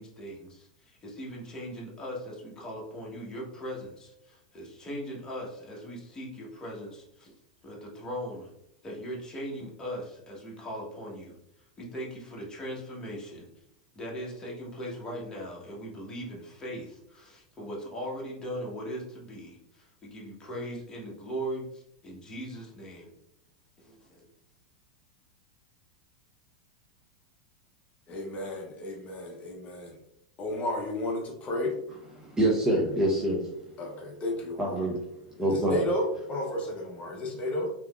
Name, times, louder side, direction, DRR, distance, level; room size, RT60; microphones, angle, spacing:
voice 1, 0.0-7.3 7.6-8.5 8.8-11.4 11.8-13.5 13.9-23.1 23.8-24.3, equal, 20° left, -3 dB, 1.1 m, -39 dB
voice 2, 28.1-30.0 30.4-31.8 33.8-34.9 35.4-37.7, left 1 dB, 35° left, 0 dB, 0.7 m, -32 dB
voice 3, 32.2-33.4 34.6-35.0 35.3-35.8, right 1 dB, 15° right, -3 dB, 0.7 m, -25 dB
3.4 x 2.9 x 2.3 m, 0.78 s
hypercardioid pair, 100°, 4 cm